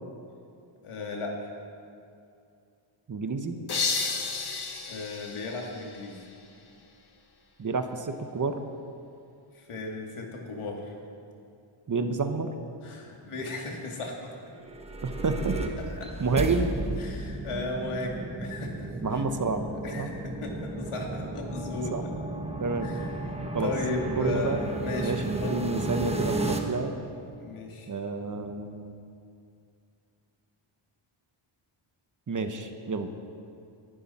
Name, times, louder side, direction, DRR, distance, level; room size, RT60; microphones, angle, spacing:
voice 1, 0.8-1.5 4.9-6.3 9.5-10.9 12.8-14.3 16.0-16.1 17.0-19.2 19.8-22.0 22.8-25.9 27.4-27.9, left 2 dB, 75° left, 0 dB, 2.5 m, -35 dB
voice 2, 3.1-3.6 7.6-8.6 11.9-12.5 15.0-15.6 16.2-16.7 19.0-19.6 20.0-20.1 21.9-22.1 22.6-22.9 23.5-23.7 24.1-24.6 25.0-26.9 27.9-29.0 32.3-33.1, right 4 dB, 40° right, 7 dB, 1.0 m, -29 dB
sound 1, 3.7-6.5, left 4 dB, 50° left, 1.5 m, -32 dB
sound 2, 14.5-26.6, right 2 dB, 10° right, 1.2 m, -34 dB
22.0 x 11.5 x 4.3 m, 2.5 s
wide cardioid pair, 115°, 50 cm